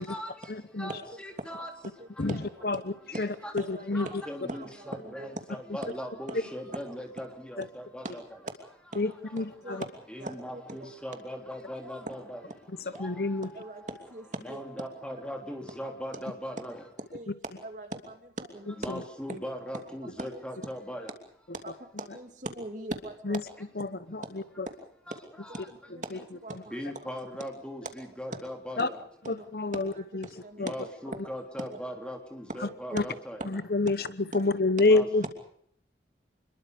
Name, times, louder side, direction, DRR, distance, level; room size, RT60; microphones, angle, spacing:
voice 1, 0.0-1.7 2.1-2.3 3.1-3.5 3.9-8.2 9.0-9.4 9.6-12.5 12.8-14.1 14.4-16.8 18.8-21.1 25.1-25.7 26.7-29.1 30.6-33.4 34.8-35.3, equal, 5° left, 3.6 m, -40 dB
voice 2, 2.0-2.8 3.1-3.3 3.6-4.1 4.5-5.3 5.8-5.9 6.3-6.4 8.0-8.1 8.9-9.0 9.4-9.9 10.2-10.8 11.8-11.9 12.9-13.0 13.5-14.6 17.1-17.4 17.6-18.8 19.3-19.4 20.2-20.4 21.6-21.7 22.0-23.4 24.2-24.3 24.7-24.8 25.0-25.2 25.5-27.1 28.3-28.4 29.2-29.5 29.7-31.3 31.6-31.8 32.6-33.0 34.3-34.5 35.2-35.3, right 1 dB, 45° right, 2.8 m, -40 dB
voice 3, 3.7-4.1 9.0-9.8 13.0-13.5 23.3-23.4 23.8-24.2 24.6-24.7 28.8-28.9 29.3-30.3 30.6-30.7 32.9-33.0 33.5-34.0 34.3-35.3, left 3 dB, 55° left, 1.0 m, -27 dB
27.5 x 22.0 x 5.2 m
head